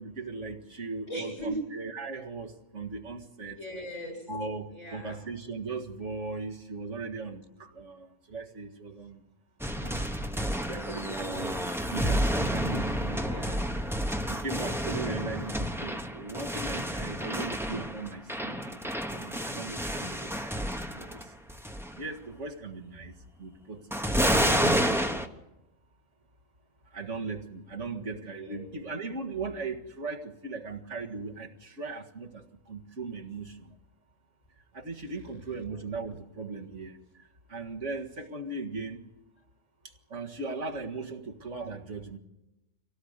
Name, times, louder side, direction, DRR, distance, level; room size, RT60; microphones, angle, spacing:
voice 1, 0.0-3.6 4.3-9.2 9.8-10.3 10.6-13.2 14.2-20.6 20.9-21.3 22.0-23.8 24.2-25.3 26.9-33.7 34.7-37.0 37.5-39.0 40.1-42.2, right 3 dB, 70° right, 3 dB, 2.2 m, -38 dB
voice 2, 1.1-1.6 3.5-4.3 4.7-5.2 12.6-13.8 27.8-28.0 28.3-28.8 35.5-35.8, equal, 85° left, 2 dB, 8.2 m, -40 dB
sound 1, 9.6-21.2 21.5-22.0 23.9-25.3, equal, ahead, 1.0 m, -30 dB
25.5 x 17.5 x 8.1 m, 0.97 s
omnidirectional pair, 1.3 m